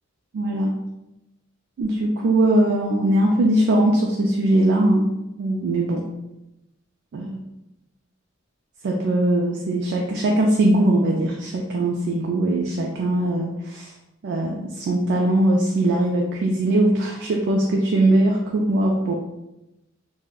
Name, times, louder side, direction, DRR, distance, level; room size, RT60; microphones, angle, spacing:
voice 1, 0.3-0.7 1.8-5.1 5.4-6.0 7.1-7.4 8.8-13.9 14.2-19.1, right 1 dB, 60° right, 0 dB, 0.3 m, -20 dB
3.6 x 2.1 x 2.3 m, 0.96 s
head